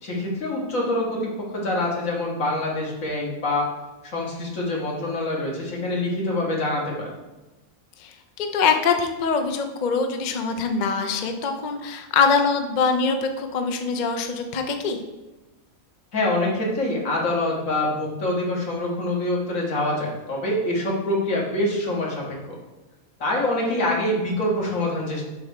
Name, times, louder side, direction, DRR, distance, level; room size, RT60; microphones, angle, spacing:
voice 1, 0.0-3.7 4.0-7.1 16.1-22.4 23.2-25.2, left 1 dB, 70° left, -3 dB, 2.1 m, -25 dB
voice 2, 8.0-15.0, left 5 dB, 50° left, 6 dB, 0.6 m, -23 dB
7.7 x 3.4 x 6.5 m, 1.1 s
omnidirectional pair, 1.5 m